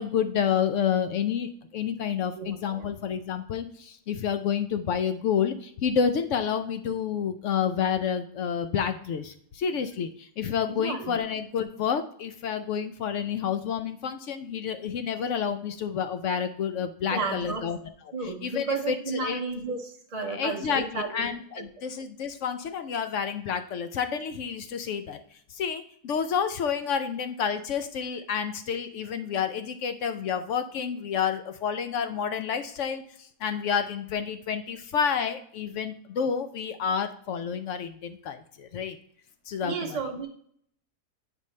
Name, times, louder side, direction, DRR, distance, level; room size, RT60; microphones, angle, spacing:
voice 1, 0.0-17.8 18.2-19.4 20.3-25.2 25.5-39.0 39.5-40.0, left 7 dB, 70° left, 9 dB, 0.7 m, -29 dB
voice 2, 2.4-2.9 10.7-11.2 17.1-17.6 18.1-21.3 21.6-21.7 39.6-40.3, right 4 dB, 40° right, 0 dB, 0.6 m, -33 dB
9.3 x 5.2 x 3.2 m, 0.63 s
omnidirectional pair, 1.7 m